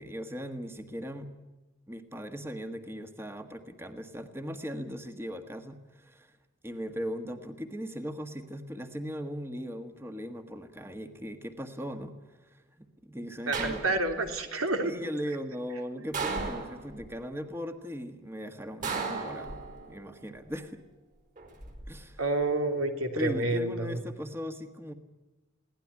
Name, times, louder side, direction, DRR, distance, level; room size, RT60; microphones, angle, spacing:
voice 1, 0.0-1.3 1.9-6.4 6.6-14.0 14.8-20.8 21.9-22.2 23.1-24.9, equal, 10° right, 7 dB, 1.5 m, -39 dB
sound 1, 13.5-14.3 16.1-17.1 18.8-20.0 21.4-21.9, right 4 dB, 40° right, 4.3 m, -35 dB
voice 2, 13.5-15.0 22.2-24.0, right 2 dB, 90° right, 5 dB, 3.2 m, -29 dB
22.5 x 17.5 x 9.8 m, 1.2 s
head